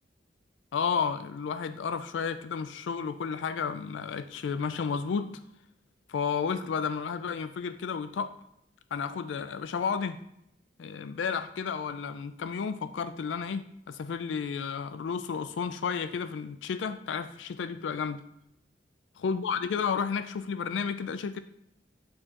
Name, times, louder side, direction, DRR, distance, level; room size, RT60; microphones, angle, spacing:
voice 1, 0.7-5.3 6.1-8.3 8.9-10.2 10.8-18.2 19.2-21.4, left 6 dB, 85° left, 11 dB, 0.4 m, -32 dB
8.5 x 4.5 x 2.9 m, 0.78 s
head